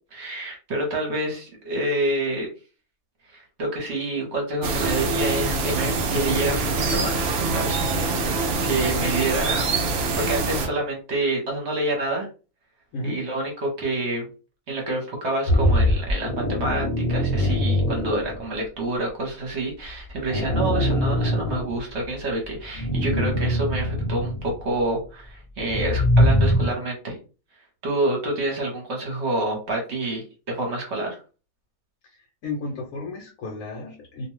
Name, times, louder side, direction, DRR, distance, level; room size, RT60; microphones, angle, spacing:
voice 1, 0.1-2.5 3.3-6.6 6.9-9.7 10.2-12.3 13.0-14.3 14.7-27.2 27.8-31.2, right 2 dB, 55° right, 0 dB, 1.0 m, -28 dB
sound 1, 4.6-10.7, right 3 dB, 70° right, 0.6 m, -24 dB
sound 2, 15.5-18.5 19.9-22.2 22.7-24.6 25.6-26.7, equal, 35° left, 0.7 m, -22 dB
voice 2, 32.4-34.3, left 2 dB, 70° left, 0 dB, 1.1 m, -33 dB
2.5 x 2.2 x 3.1 m, 0.34 s
omnidirectional pair, 1.6 m